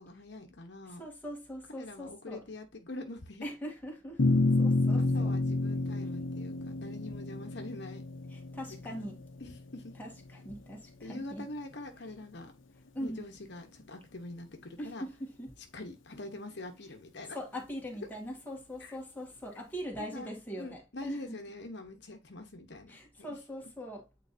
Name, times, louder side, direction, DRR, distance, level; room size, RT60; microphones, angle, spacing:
voice 1, 0.0-1.0 1.8-3.4 5.0-8.0 8.9-9.9 11.0-12.5 13.0-15.0 15.7-17.4 18.0-18.1 18.8-19.0 20.0-20.3 20.6-23.4, left 2 dB, 60° left, 1.1 m, -44 dB
voice 2, 0.9-2.4 3.4-5.3 8.3-9.2 10.0-11.5 12.9-13.3 14.8-15.5 17.3-21.4 22.9-24.1, equal, 10° left, 1.7 m, -41 dB
sound 1, 4.2-10.7, left 2 dB, 90° left, 0.8 m, -30 dB
8.9 x 4.0 x 2.7 m
head